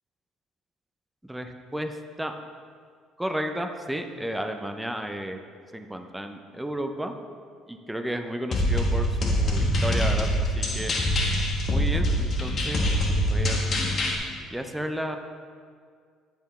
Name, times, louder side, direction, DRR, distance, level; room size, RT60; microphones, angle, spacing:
voice 1, 1.2-2.3 3.2-5.4 5.7-7.1 7.7-11.0 11.7-12.9 13.3-13.8 14.5-15.2, right 1 dB, 5° right, 6 dB, 0.5 m, -33 dB
sound 1, 8.5-14.2, equal, 30° left, 1.0 m, -24 dB
10.0 x 5.9 x 4.2 m, 2.1 s
cardioid pair, 150°, 0 cm